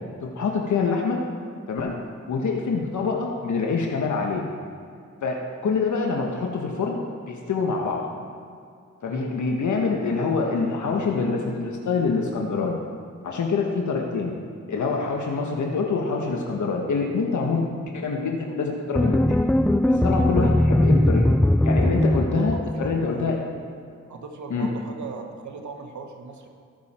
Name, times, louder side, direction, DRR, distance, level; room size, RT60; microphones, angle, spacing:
voice 1, 0.2-1.2 1.7-2.0 2.3-4.4 5.2-8.0 9.0-12.8 13.2-14.3 14.7-17.7 17.9-19.4 19.9-21.3 21.6-23.4 24.5-24.7, left 4 dB, 70° left, 0 dB, 1.4 m, -25 dB
sound 1, 19.0-23.2, left 1 dB, 5° left, 0.3 m, -20 dB
voice 2, 22.3-23.2 24.1-26.5, right 4 dB, 70° right, 4 dB, 1.4 m, -39 dB
18.5 x 6.4 x 4.4 m, 2.4 s
cardioid pair, 55°, 30 cm